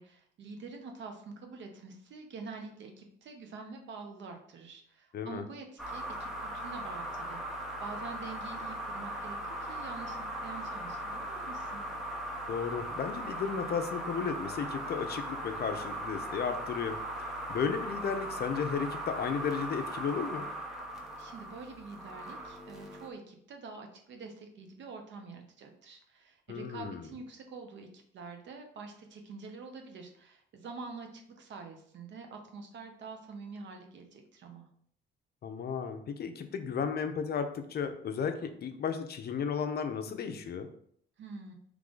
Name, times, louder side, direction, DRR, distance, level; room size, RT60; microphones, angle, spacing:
voice 1, 0.0-11.8 21.2-34.7 41.2-41.5, right 4 dB, 70° right, 4 dB, 0.9 m, -46 dB
voice 2, 5.1-5.4 12.5-20.5 26.5-27.1 35.4-40.7, left 6 dB, 55° left, 8 dB, 0.6 m, -34 dB
sound 1, 5.8-23.1, right 1 dB, ahead, 1.0 m, -39 dB
3.7 x 3.2 x 3.8 m, 0.64 s
cardioid pair, 90°, 20 cm